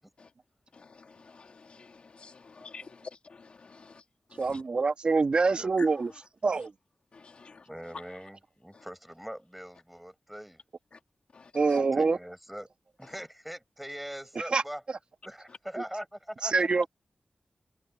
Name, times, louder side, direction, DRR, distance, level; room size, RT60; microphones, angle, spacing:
voice 1, 0.7-4.0 4.3-4.6 5.8-5.9 7.1-8.0 8.7-8.8 10.9-11.0 11.3-11.8, left 4 dB, 65° left, 2.6 m, -49 dB
voice 2, 4.4-6.1 6.4-6.7 11.5-12.2 14.5-14.6 16.5-16.9, right 4 dB, 60° right, 1.6 m, -25 dB
voice 3, 7.7-10.6 11.7-12.7 13.0-14.8 15.2-16.5, equal, 5° right, 6.6 m, -42 dB
wide cardioid pair, 95°, 2 cm